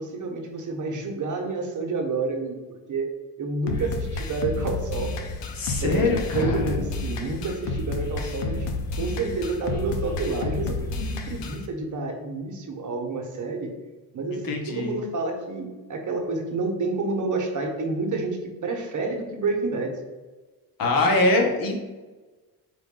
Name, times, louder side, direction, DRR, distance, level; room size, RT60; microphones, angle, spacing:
voice 1, 0.0-2.6 2.9-3.1 3.4-5.1 5.8-8.7 9.0-13.7 14.1-20.0, right 3 dB, 40° right, 2 dB, 0.9 m, -29 dB
sound 1, 3.7-11.7, left 3 dB, 70° left, 0.7 m, -30 dB
voice 2, 5.5-6.8 14.3-14.9 20.8-21.8, left 2 dB, 50° left, 1 dB, 1.1 m, -23 dB
4.6 x 2.6 x 3.7 m, 1.2 s
supercardioid pair, 80°, 44 cm